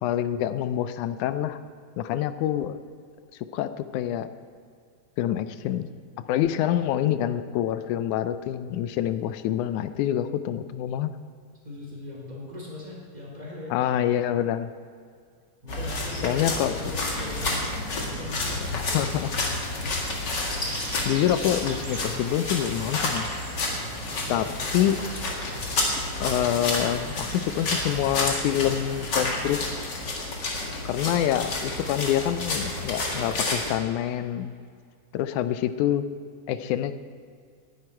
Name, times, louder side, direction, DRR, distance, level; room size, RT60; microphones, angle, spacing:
voice 1, 0.0-1.6 2.0-2.8 3.5-4.3 5.2-5.9 6.3-11.1 13.7-14.7 16.2-16.7 18.7-19.3 21.1-23.3 24.3-24.5 24.7-25.0 26.2-29.9 30.9-34.6 35.1-36.0 36.5-36.9, left 11 dB, 80° left, 12 dB, 2.1 m, -26 dB
voice 2, 11.6-13.9 15.6-17.7 17.9-19.0, left 2 dB, 15° right, -4 dB, 3.7 m, -40 dB
sound 1, 15.7-33.7, left 2 dB, 40° left, 2.2 m, -30 dB
sound 2, 20.3-29.7, right 4 dB, 75° right, 0.7 m, -45 dB
19.0 x 10.5 x 4.5 m, 2.2 s
omnidirectional pair, 3.5 m